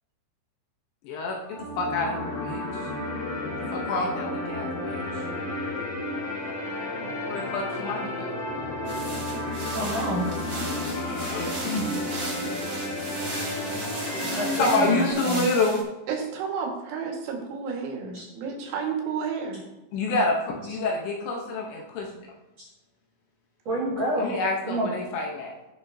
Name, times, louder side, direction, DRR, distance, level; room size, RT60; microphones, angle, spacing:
voice 1, 1.0-1.4 1.8-2.6 3.7-5.0 7.3-8.3 10.7-11.9 14.6-15.8 19.9-22.1 24.2-25.5, left 3 dB, 75° left, 0 dB, 2.9 m, -27 dB
sound 1, 1.4-15.1, left 1 dB, 45° left, 3.1 m, -32 dB
sound 2, 8.8-15.8, right 2 dB, 35° right, 1.4 m, -36 dB
voice 2, 9.7-10.3 14.1-15.5 18.1-18.2 22.6-22.7 23.7-24.4 24.7-24.9, right 1 dB, 55° right, -6 dB, 1.8 m, -29 dB
voice 3, 16.1-19.6, right 6 dB, 75° right, 0 dB, 4.1 m, -31 dB
18.0 x 6.1 x 2.7 m, 1.0 s
omnidirectional pair, 5.8 m